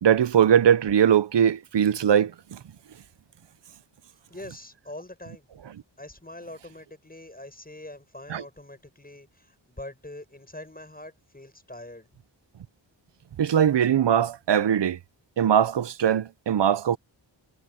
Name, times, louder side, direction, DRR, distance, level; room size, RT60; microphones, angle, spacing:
voice 1, 0.0-2.6 8.3-8.4 13.4-15.0 15.4-17.0, right 9 dB, 65° right, 0.7 m, -21 dB
voice 2, 4.3-5.5 6.0-12.1, left 1 dB, 20° left, 7.5 m, -43 dB
wide cardioid pair, 70°, 46 cm